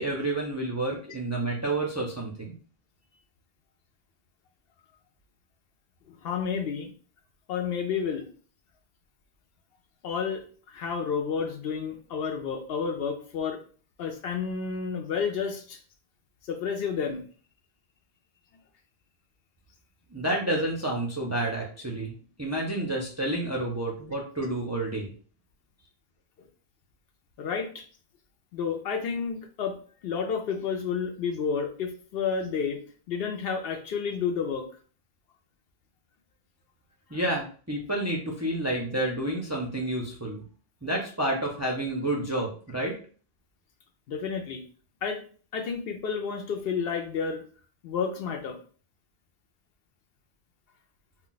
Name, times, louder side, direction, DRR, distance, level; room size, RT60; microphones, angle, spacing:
voice 1, 0.0-2.5 20.1-22.1 22.4-25.1 37.1-40.4 40.8-42.9, right 1 dB, 25° right, -2 dB, 0.4 m, -29 dB
voice 2, 6.1-6.9 7.5-8.3 10.0-13.6 14.0-15.8 16.5-17.2 27.4-27.8 28.5-29.8 30.0-32.8 33.1-34.7 44.1-44.6 45.0-45.2 45.5-47.4 47.8-48.6, left 6 dB, 70° left, 5 dB, 0.8 m, -30 dB
2.2 x 2.2 x 3.9 m, 0.41 s
omnidirectional pair, 1.0 m